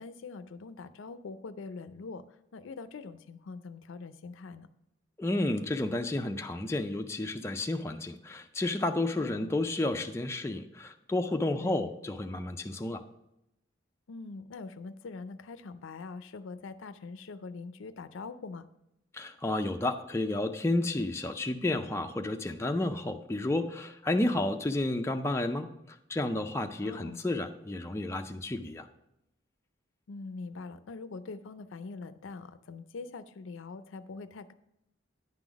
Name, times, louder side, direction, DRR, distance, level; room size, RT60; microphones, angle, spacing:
voice 1, 0.0-2.2 2.5-4.7 9.2-9.5 11.6-11.9 14.1-18.7 26.8-27.2 30.1-34.5, left 4 dB, 75° left, 13 dB, 0.4 m, -43 dB
voice 2, 5.2-13.0 19.1-28.9, left 2 dB, 15° left, 5 dB, 0.3 m, -31 dB
9.7 x 3.9 x 6.0 m, 0.85 s
head